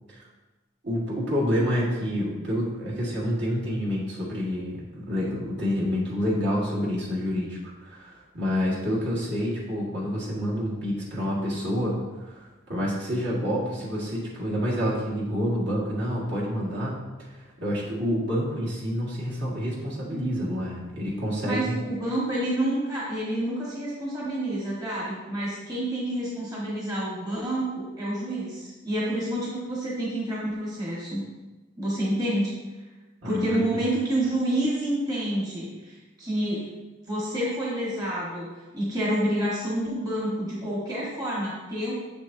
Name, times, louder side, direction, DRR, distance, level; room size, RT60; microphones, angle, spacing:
voice 1, 0.8-17.0 17.6-21.7 33.2-33.6, equal, 55° right, -6 dB, 1.7 m, -28 dB
voice 2, 21.4-31.2 31.8-32.5 33.2-36.7 37.1-38.5 38.7-41.9, right 1 dB, 20° right, -6 dB, 1.3 m, -28 dB
7.2 x 6.2 x 2.7 m, 1.2 s
head